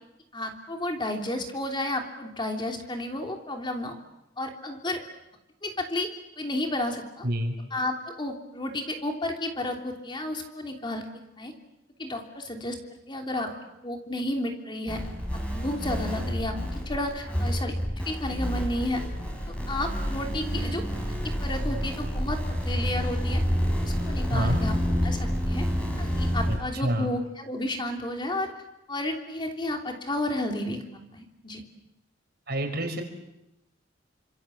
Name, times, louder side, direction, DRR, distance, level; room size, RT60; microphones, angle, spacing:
voice 1, 0.3-3.9 4.4-5.0 5.6-6.1 6.4-7.2 7.7-11.0 11.4-11.5 12.0-12.8 13.1-13.5 13.8-15.1 15.5-16.6 16.8-17.7 18.1-19.0 19.7-20.8 21.1-22.4 22.6-23.4 23.8-25.7 26.0-28.5 28.9-31.6, left 1 dB, 25° left, 3 dB, 3.3 m, -32 dB
voice 2, 7.2-7.5 13.4-13.5 24.3-24.6 26.5-27.1 32.5-33.0, equal, 55° right, 5 dB, 5.2 m, -28 dB
sound 1, 14.9-26.6, equal, 5° left, 6.0 m, -29 dB
29.5 x 26.0 x 7.7 m, 0.91 s
head